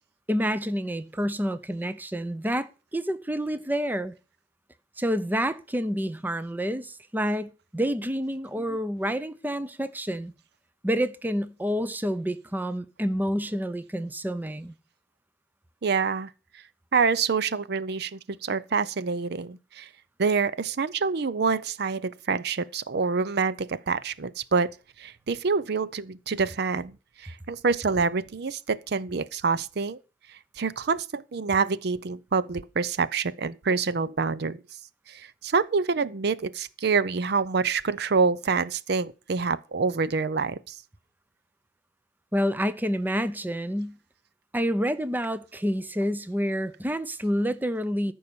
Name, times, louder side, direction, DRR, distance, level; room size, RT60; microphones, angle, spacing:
voice 1, 0.3-4.1 5.0-10.3 10.8-14.7 42.3-44.0 44.5-48.1, equal, 10° right, 0.6 m, -28 dB
voice 2, 15.8-16.3 16.9-19.9 20.2-24.7 25.0-26.9 27.2-30.0 30.6-34.6 35.1-40.7, right 5 dB, 60° right, 0.5 m, -26 dB
14.0 x 5.4 x 6.9 m
head